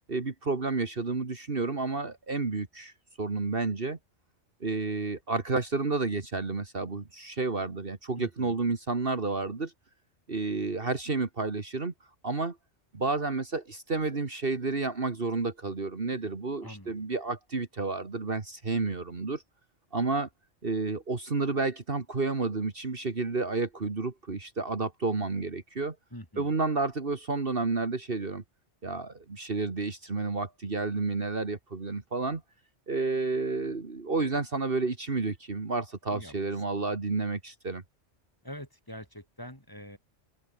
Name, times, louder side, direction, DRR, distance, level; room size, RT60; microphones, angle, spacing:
voice 1, 0.1-4.0 4.6-9.7 10.3-11.9 12.2-12.6 12.9-19.4 19.9-20.3 20.6-26.0 26.4-28.4 28.8-32.4 32.9-37.8, right 3 dB, 50° right, 2.2 m, -30 dB
voice 2, 8.2-8.6 16.6-17.0 26.1-26.5 36.1-36.6 38.4-40.0, equal, 15° left, 4.7 m, -45 dB
open air
omnidirectional pair, 1.2 m